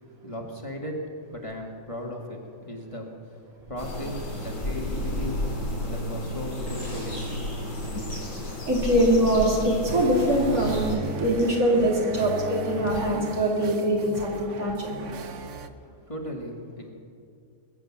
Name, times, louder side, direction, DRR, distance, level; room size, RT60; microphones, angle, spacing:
voice 1, 0.2-2.4 2.6-3.1 3.7-5.4 5.8-7.2 16.1-16.9, equal, 20° left, -1 dB, 1.7 m, -36 dB
sound 1, 3.8-11.0, left 1 dB, 65° left, 4.4 m, -32 dB
sound 2, 6.7-12.5, equal, 15° right, 5.2 m, -49 dB
voice 2, 8.6-15.1, right 1 dB, 75° right, -3 dB, 3.6 m, -23 dB
sound 3, 9.9-15.7, right 5 dB, 60° right, 1.0 m, -36 dB
21.0 x 9.2 x 7.2 m, 2.4 s
omnidirectional pair, 1.5 m